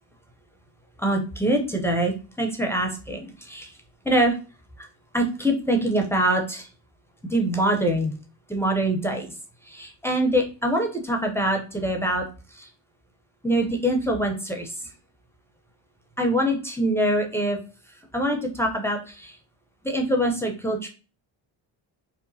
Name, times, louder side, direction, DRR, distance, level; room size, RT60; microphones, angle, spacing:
voice 1, 1.0-3.7 4.0-4.4 4.8-4.9 5.1-6.7 7.3-8.2 8.5-9.3 9.7-12.2 12.5-12.7 13.4-14.7 16.2-17.6 18.1-19.4 19.8-20.9, right 1 dB, 5° left, 2 dB, 0.5 m, -24 dB
2.9 x 2.1 x 2.6 m, 0.33 s
supercardioid pair, 65°, 46 cm